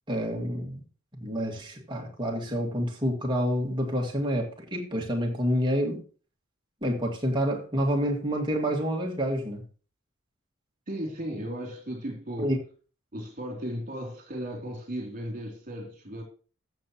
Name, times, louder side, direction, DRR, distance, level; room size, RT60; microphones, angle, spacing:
voice 1, 0.1-0.8 1.2-6.0 6.8-9.6 12.4-12.6, equal, 20° right, 2.1 m, -28 dB
voice 2, 10.9-12.6 13.1-16.2, equal, 40° right, 3.2 m, -35 dB
14.0 x 7.2 x 3.1 m
head